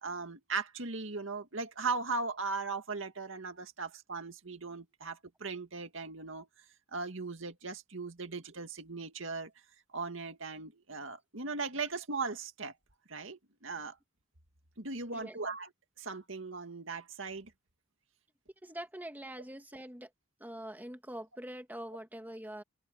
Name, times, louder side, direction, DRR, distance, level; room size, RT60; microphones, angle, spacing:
voice 1, 0.0-6.5 6.9-9.5 9.9-12.7 13.1-14.0 14.8-15.7 16.0-17.5, right 4 dB, 70° right, 2.3 m, -38 dB
voice 2, 15.1-15.4 18.6-20.1 20.4-22.6, right 1 dB, 10° right, 2.1 m, -44 dB
head